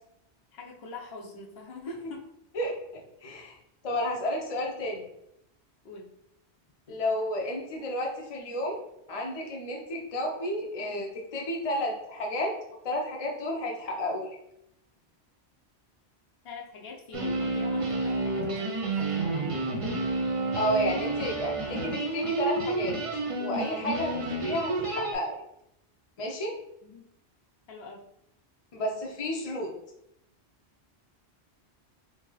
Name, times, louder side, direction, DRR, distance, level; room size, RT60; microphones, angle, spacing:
voice 1, 0.5-2.2 5.8-6.1 16.4-19.6 26.8-27.0 27.7-28.1, left 4 dB, 70° left, 0 dB, 0.8 m, -44 dB
voice 2, 2.5-3.6 3.8-5.0 6.9-8.8 9.1-12.5 12.8-14.4 20.5-23.0 23.4-25.3 26.2-26.5 28.7-29.7, equal, 40° left, 0 dB, 0.6 m, -31 dB
sound 1, 17.1-25.1, right 2 dB, 35° right, 0.6 m, -30 dB
2.8 x 2.7 x 3.8 m, 0.78 s
omnidirectional pair, 1.1 m